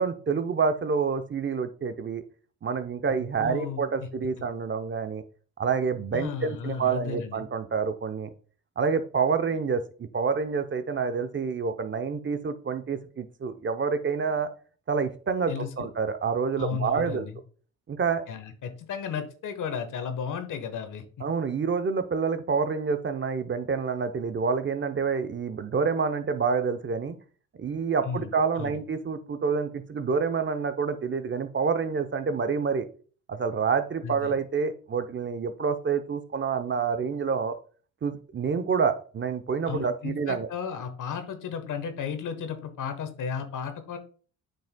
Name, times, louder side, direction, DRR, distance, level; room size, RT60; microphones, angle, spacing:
voice 1, 0.0-2.2 2.6-5.2 5.6-8.3 8.8-14.5 14.9-17.3 17.9-18.2 21.2-27.2 27.6-32.8 33.3-37.6 38.0-40.5, right 5 dB, 35° right, 10 dB, 0.7 m, -28 dB
voice 2, 3.4-3.8 6.1-7.4 15.5-15.9 16.6-17.4 18.3-21.0 28.0-28.8 34.0-34.3 39.6-44.0, left 7 dB, 65° left, 8 dB, 1.2 m, -34 dB
8.8 x 5.4 x 2.2 m, 0.42 s
cardioid pair, 75°, 34 cm